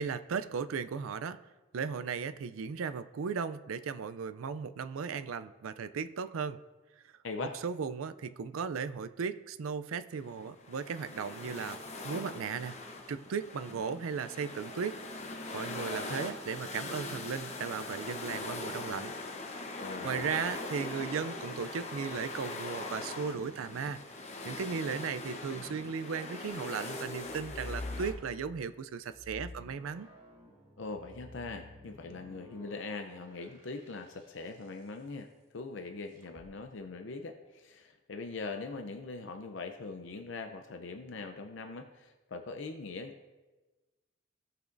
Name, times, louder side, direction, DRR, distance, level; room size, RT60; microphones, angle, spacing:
voice 1, 0.0-1.4 1.7-6.6 7.0-7.1 7.4-11.8 12.0-12.8 13.1-15.0 15.5-19.1 19.6-24.0 24.4-30.1, right 6 dB, 85° right, 12 dB, 0.4 m, -36 dB
voice 2, 7.2-7.5 19.8-20.5 30.8-43.3, left 3 dB, 65° left, 6 dB, 0.6 m, -42 dB
sound 1, 10.1-28.1, left 2 dB, 35° left, 0.9 m, -41 dB
sound 2, 27.2-28.7 29.1-34.6 36.2-36.5, left 2 dB, 20° right, 1.9 m, -47 dB
17.0 x 6.0 x 2.6 m, 1.2 s
head